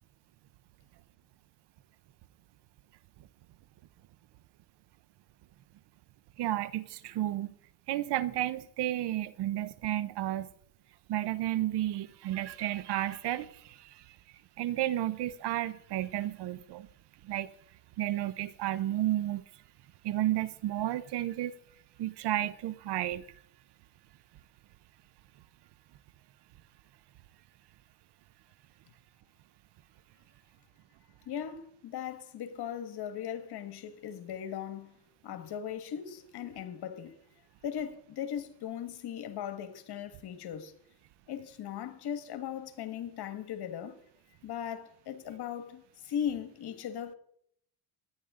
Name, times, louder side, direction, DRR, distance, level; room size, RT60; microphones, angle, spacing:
voice 1, 6.4-7.5 7.9-10.5 11.1-14.0 14.6-16.9 17.2-17.5 18.0-19.4 20.0-21.5 22.0-23.3, right 13 dB, 60° right, 0.8 m, -32 dB
voice 2, 31.3-35.0 35.2-37.2 37.6-40.7 41.3-44.0 44.4-47.1, left 9 dB, 55° left, 1.7 m, -38 dB
17.0 x 10.0 x 3.8 m
cardioid pair, 95°, 45 cm